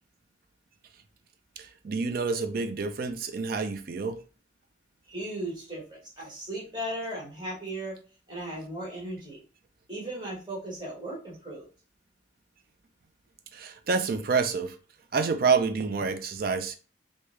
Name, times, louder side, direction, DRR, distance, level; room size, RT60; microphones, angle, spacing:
voice 1, 1.8-4.2 13.5-14.7 15.1-16.8, right 5 dB, 50° right, 0.4 m, -27 dB
voice 2, 5.1-8.0 8.3-9.4 9.9-11.6, right 1 dB, 25° right, 1.5 m, -36 dB
3.4 x 2.7 x 3.2 m
head